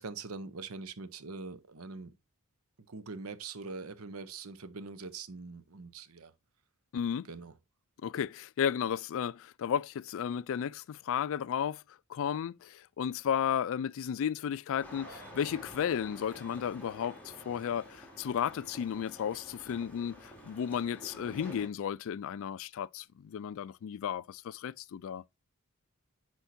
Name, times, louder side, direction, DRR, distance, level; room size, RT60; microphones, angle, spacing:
voice 1, 0.0-2.1 2.9-6.3 7.3-7.5, right 4 dB, 80° right, 0.8 m, -43 dB
voice 2, 6.9-7.3 8.0-25.2, left 8 dB, 65° left, 0.3 m, -34 dB
sound 1, 14.8-21.7, equal, 5° left, 2.4 m, -50 dB
10.0 x 4.5 x 2.6 m
head